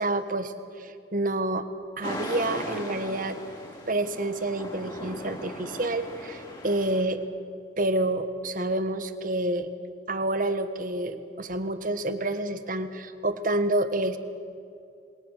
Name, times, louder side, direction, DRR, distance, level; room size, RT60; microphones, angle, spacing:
voice 1, 0.0-1.7 2.0-3.4 3.9-7.2 7.8-9.7 10.1-14.2, right 1 dB, 45° right, 10 dB, 1.4 m, -28 dB
sound 1, 2.0-7.0, left 1 dB, 25° left, 4.8 m, -38 dB
28.0 x 22.0 x 6.5 m, 2.5 s
head